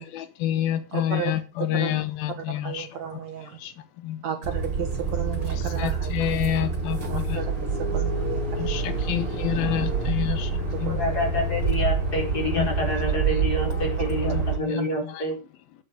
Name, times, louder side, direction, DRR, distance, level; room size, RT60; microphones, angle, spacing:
voice 1, 0.0-3.2 3.6-4.2 5.8-7.4 8.6-11.0 12.6-12.7 13.7-13.9 14.2-15.2, left 11 dB, 90° left, 3.1 m, -29 dB
voice 2, 0.9-1.3 1.8-2.0 2.6-3.6 4.2-6.1 7.1-9.2 10.7-11.2, right 8 dB, 60° right, 2.3 m, -34 dB
sound 1, 4.4-14.6, right 4 dB, 35° right, 5.3 m, -27 dB
voice 3, 10.9-15.3, left 1 dB, 25° left, 5.3 m, -28 dB
12.0 x 9.8 x 5.0 m
omnidirectional pair, 4.1 m